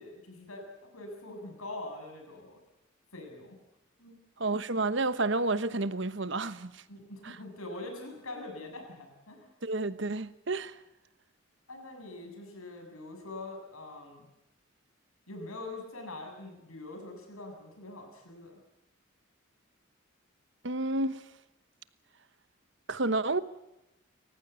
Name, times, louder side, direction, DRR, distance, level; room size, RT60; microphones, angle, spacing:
voice 1, 0.0-2.6 3.1-3.6 4.0-4.2 6.9-9.5 11.7-14.3 15.3-18.5, left 2 dB, 85° left, 7.4 m, -44 dB
voice 2, 4.4-6.8 7.2-7.4 9.6-10.8 20.6-21.2 22.9-23.4, right 2 dB, 55° right, 1.1 m, -30 dB
29.5 x 15.5 x 8.3 m
head